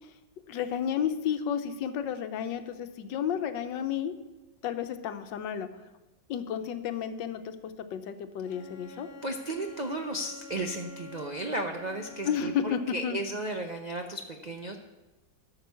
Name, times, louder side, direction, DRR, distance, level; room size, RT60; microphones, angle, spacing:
voice 1, 0.5-4.2 4.6-5.7 6.3-9.1 12.2-13.2, left 8 dB, 85° left, 9 dB, 1.5 m, -32 dB
Bowed string instrument, 8.4-12.8, left 3 dB, 45° left, 0.8 m, -48 dB
voice 2, 9.2-14.8, right 1 dB, 60° right, 3 dB, 0.4 m, -34 dB
13.0 x 6.1 x 6.9 m, 1.1 s
omnidirectional pair, 1.9 m